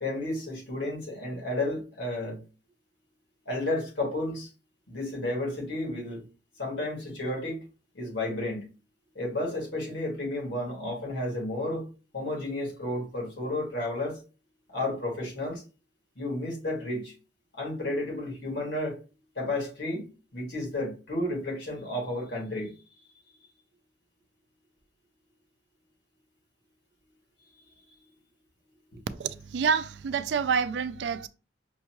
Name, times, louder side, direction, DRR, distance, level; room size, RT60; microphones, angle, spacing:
voice 1, 0.0-2.4 3.5-4.5 4.9-6.2 6.6-7.6 7.9-8.6 9.2-11.9 12.1-14.2 14.7-15.6 16.2-17.1 17.5-19.0 19.4-20.1 20.3-22.7, left 1 dB, 90° left, 1.9 m, -32 dB
voice 2, 29.2-31.3, right 6 dB, 70° right, 0.3 m, -28 dB
5.4 x 2.3 x 3.0 m
head